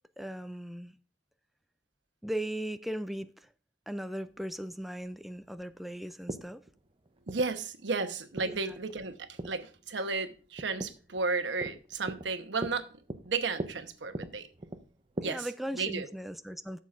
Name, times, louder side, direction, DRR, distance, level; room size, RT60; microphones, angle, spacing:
voice 1, 0.2-0.9 2.2-3.3 3.9-6.6 8.5-8.8 15.2-16.8, equal, ahead, 0.3 m, -38 dB
sound 1, 4.2-15.2, right 1 dB, 30° right, 0.7 m, -43 dB
voice 2, 7.3-12.9 13.2-14.5 15.2-15.5 15.8-16.1, right 4 dB, 75° right, 1.0 m, -33 dB
14.5 x 7.2 x 2.5 m
head